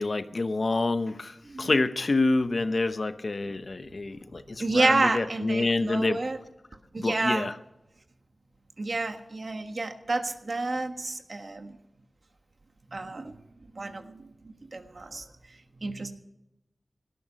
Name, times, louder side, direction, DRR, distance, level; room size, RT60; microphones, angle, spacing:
voice 1, 0.0-6.2 7.0-7.5, left 3 dB, 55° left, 0.9 m, -27 dB
voice 2, 4.5-6.4 6.9-7.5 8.8-11.8 12.9-13.4 13.7-15.3 15.8-16.1, right 2 dB, 55° right, 1.5 m, -29 dB
17.0 x 13.0 x 5.2 m
wide cardioid pair, 75°, 0 cm